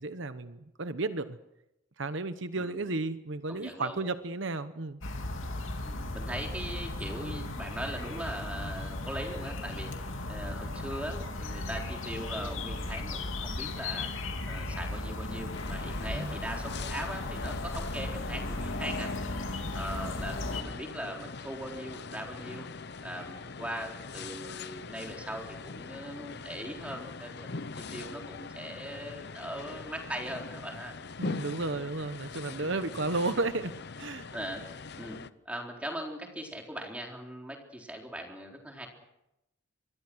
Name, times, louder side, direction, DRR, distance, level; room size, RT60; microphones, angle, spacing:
voice 1, 0.0-1.4 2.0-5.0 16.1-16.3 31.2-34.3, right 3 dB, 60° right, 11 dB, 1.0 m, -33 dB
voice 2, 3.5-4.0 5.8-9.9 10.3-14.1 14.5-19.1 19.7-22.7 23.0-27.6 27.9-30.9 32.6-32.7 34.3-35.2 35.5-38.9, equal, 5° right, 1 dB, 4.0 m, -40 dB
sound 1, 5.0-20.6, left 2 dB, 70° left, 2.7 m, -36 dB
sound 2, 15.5-35.3, left 4 dB, 50° left, 0.8 m, -42 dB
26.0 x 22.0 x 6.3 m, 0.88 s
head